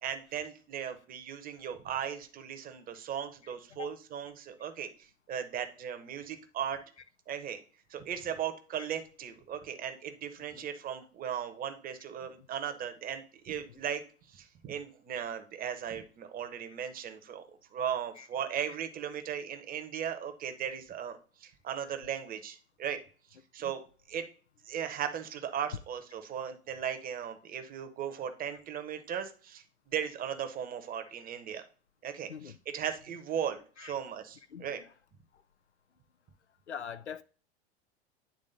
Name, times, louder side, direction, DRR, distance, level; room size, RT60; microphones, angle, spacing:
voice 1, 0.0-4.9 5.3-6.8 7.3-7.6 7.9-14.0 14.3-17.4 17.7-23.0 23.5-23.8 24.1-24.2 24.6-31.6 32.0-32.3 32.7-34.8, right 8 dB, 25° right, 1.0 m, -37 dB
voice 2, 34.5-34.9 35.3-35.4 36.7-37.2, left 8 dB, 85° left, 0.6 m, -44 dB
9.5 x 3.5 x 3.9 m
figure-of-eight pair, 85°, 33 cm